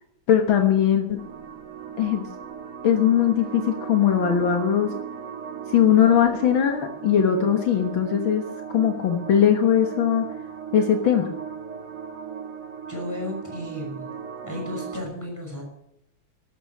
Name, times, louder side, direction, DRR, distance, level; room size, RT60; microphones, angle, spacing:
voice 1, 0.3-1.2 2.0-2.2 2.8-4.9 5.7-8.4 8.7-10.3 10.7-11.3, left 9 dB, 70° left, 5 dB, 2.1 m, -20 dB
sound 1, 1.2-15.0, right 7 dB, 55° right, 1.9 m, -37 dB
voice 2, 12.9-14.1 14.4-15.6, left 1 dB, 5° left, 0 dB, 6.1 m, -34 dB
13.0 x 12.5 x 7.3 m, 0.77 s
omnidirectional pair, 2.3 m